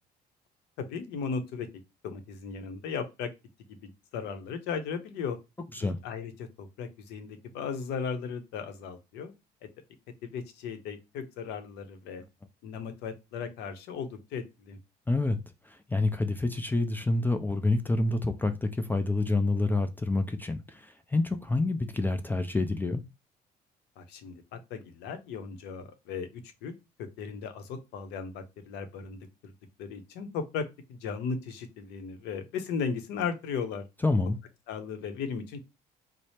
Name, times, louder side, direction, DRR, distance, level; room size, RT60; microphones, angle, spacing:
voice 1, 0.8-1.7 2.0-3.3 3.7-5.4 5.8-9.3 9.6-9.7 10.2-12.2 12.6-14.8 24.0-26.7 27.2-29.5 29.8-33.8 34.7-35.6, left 6 dB, 90° left, 0.7 m, -36 dB
voice 2, 15.1-15.4 15.6-23.0 34.0-34.4, left 2 dB, 10° left, 0.4 m, -28 dB
3.2 x 2.0 x 4.1 m
cardioid pair, 110°, 17 cm